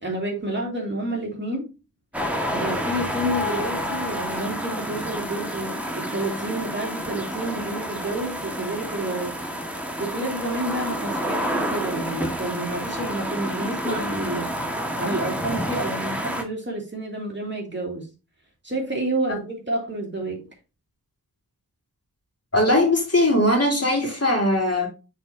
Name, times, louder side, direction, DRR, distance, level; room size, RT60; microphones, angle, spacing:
voice 1, 0.0-1.7 2.5-9.3 10.0-14.5 15.0-18.1 18.6-20.4, right 1 dB, 30° right, 2.5 m, -29 dB
sound 1, 2.1-16.4, equal, 5° right, 1.7 m, -29 dB
voice 2, 22.5-24.9, left 1 dB, 40° left, 2.9 m, -20 dB
8.8 x 4.2 x 2.8 m
wide cardioid pair, 45°, 37 cm